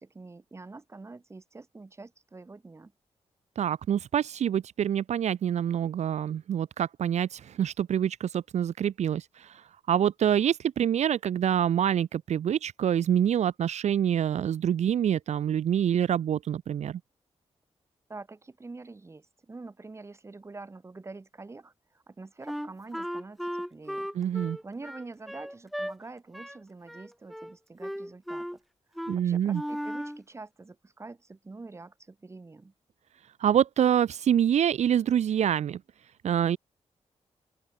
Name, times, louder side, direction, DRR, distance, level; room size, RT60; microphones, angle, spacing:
voice 1, 0.0-2.9 18.1-28.6 28.9-32.7, right 3 dB, 25° right, 3.4 m, -46 dB
voice 2, 3.6-17.0 24.1-24.6 29.1-29.6 33.4-35.8 36.2-36.6, right 9 dB, 75° right, 0.9 m, -26 dB
Wind instrument woodwind instrument, 22.5-25.9 26.3-26.6 26.9-27.5 27.8-28.6 29.0-29.2 29.5-30.2, equal, ahead, 0.5 m, -36 dB
open air
wide cardioid pair, 135°, 12 cm